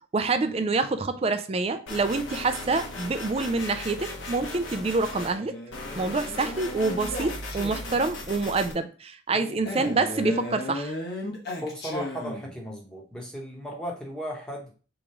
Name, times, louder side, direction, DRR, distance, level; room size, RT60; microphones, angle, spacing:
voice 1, 0.1-5.5 5.9-10.9, right 3 dB, 30° right, 10 dB, 0.4 m, -27 dB
sound 1, 1.9-5.3 5.7-8.7, left 2 dB, 75° left, 1.1 m, -37 dB
Male speech man speaking, 5.1-8.1 9.7-12.6, left 1 dB, 55° left, 1.1 m, -36 dB
voice 2, 11.6-14.7, equal, 5° left, -1 dB, 1.0 m, -36 dB
3.8 x 3.0 x 4.7 m, 0.38 s
head